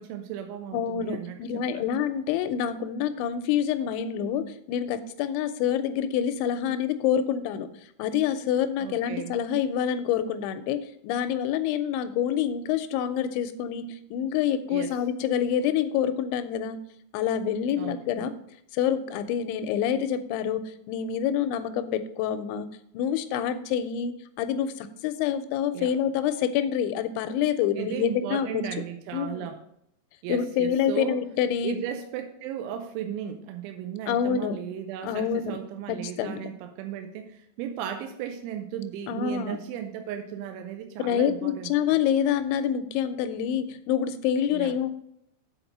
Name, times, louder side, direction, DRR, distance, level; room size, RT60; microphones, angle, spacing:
voice 1, 0.0-1.8 8.8-9.3 14.7-15.0 17.8-18.0 25.7-25.9 27.8-29.6 30.2-31.2 31.6-42.0 44.5-44.7, right 9 dB, 90° right, 5 dB, 3.1 m, -35 dB
voice 2, 0.7-7.7 8.0-16.8 17.1-18.3 18.7-22.7 22.9-28.5 29.1-29.5 30.3-31.8 34.1-34.6 35.0-35.6 35.9-36.5 39.1-39.6 41.0-44.9, left 9 dB, 85° left, 10 dB, 2.7 m, -27 dB
7.8 x 4.4 x 6.6 m, 0.74 s
omnidirectional pair, 5.5 m